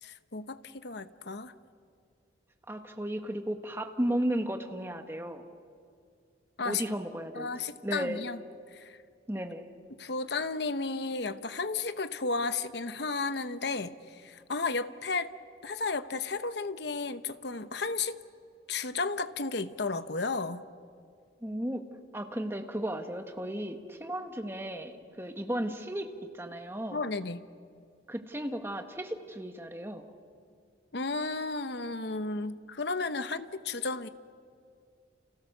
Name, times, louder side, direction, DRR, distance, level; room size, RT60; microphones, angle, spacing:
voice 1, 0.0-1.5 6.6-6.8 7.3-8.4 8.7-9.0 10.0-15.3 15.6-18.2 18.7-20.7 26.9-27.5 30.9-34.1, left 3 dB, 60° left, 11 dB, 1.0 m, -33 dB
voice 2, 2.7-5.4 6.6-7.5 7.8-8.2 9.3-9.7 21.4-21.8 22.1-26.1 26.3-27.0 28.1-30.0, right 1 dB, 10° right, 5 dB, 1.5 m, -34 dB
30.0 x 29.5 x 6.7 m, 2.3 s
head